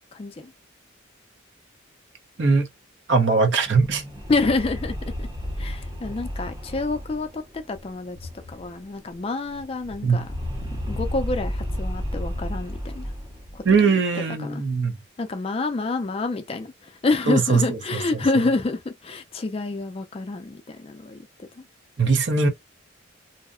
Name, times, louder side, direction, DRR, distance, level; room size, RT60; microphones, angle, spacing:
voice 1, 0.1-0.5 4.3-5.3 5.6-10.3 10.9-13.1 13.5-14.6 15.2-21.7, left 3 dB, 30° left, 0.3 m, -28 dB
voice 2, 3.1-4.0 10.0-10.2 13.6-15.0 17.3-17.6 17.9-18.0 22.0-22.5, right 4 dB, 60° right, 0.6 m, -20 dB
sound 1, 3.5-8.8 9.1-9.2 9.5-13.8, left 1 dB, 20° right, 0.7 m, -32 dB
2.7 x 2.0 x 2.4 m
head